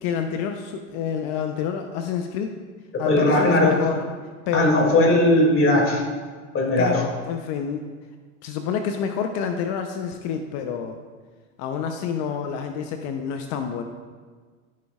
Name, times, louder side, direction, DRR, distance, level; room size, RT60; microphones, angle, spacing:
voice 1, 0.0-2.5 3.0-4.0 4.5-4.9 6.8-7.9 8.4-11.0 11.6-13.8, left 7 dB, 55° left, 6 dB, 0.8 m, -28 dB
voice 2, 2.9-3.8 4.5-6.0 6.5-7.0, left 1 dB, 30° left, 0 dB, 2.4 m, -18 dB
13.5 x 6.4 x 2.4 m, 1.5 s
hypercardioid pair, 90°, 41 cm